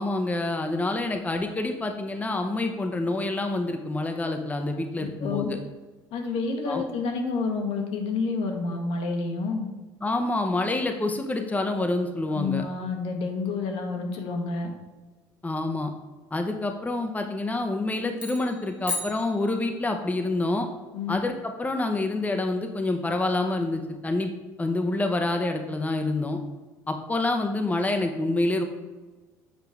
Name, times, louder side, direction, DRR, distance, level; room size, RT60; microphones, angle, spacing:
voice 1, 0.0-5.6 6.7-6.8 10.0-12.6 15.4-15.9 16.3-20.7 21.1-24.3 24.6-26.4 26.9-28.6, left 2 dB, 15° left, 4 dB, 0.7 m, -27 dB
voice 2, 5.0-5.5 6.1-9.7 12.3-14.7 20.9-21.2, left 4 dB, 65° left, 3 dB, 1.1 m, -29 dB
sound 1, 18.1-20.1, left 2 dB, 10° right, 1.5 m, -36 dB
7.1 x 4.5 x 3.5 m, 1.2 s
hypercardioid pair, 65°, 11 cm